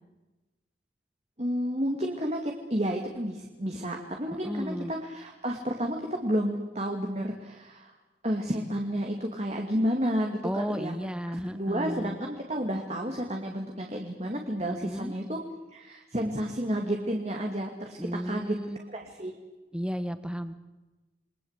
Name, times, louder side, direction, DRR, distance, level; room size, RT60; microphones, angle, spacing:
voice 1, 1.4-7.9 8.2-11.0 11.3-15.4 15.7-19.4, equal, 35° right, 2 dB, 2.5 m, -31 dB
voice 2, 4.4-4.9 10.4-12.2 14.7-15.1 18.0-18.8 19.7-20.6, equal, 5° right, 10 dB, 1.5 m, -33 dB
28.5 x 22.5 x 8.3 m, 1.1 s
head